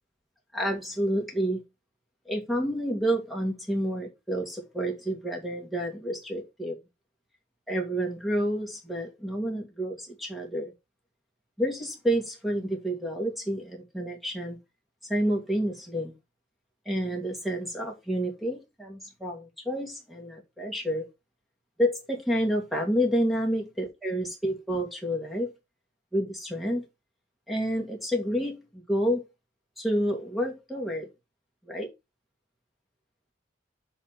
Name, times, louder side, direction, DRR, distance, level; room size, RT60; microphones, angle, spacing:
voice 1, 0.5-1.6 2.3-6.8 7.7-10.7 11.6-14.6 15.0-16.1 16.9-21.1 21.8-25.5 26.1-26.8 27.5-29.2 29.8-31.1 31.7-31.9, equal, ahead, 2.5 m, -29 dB
8.0 x 3.7 x 6.1 m
head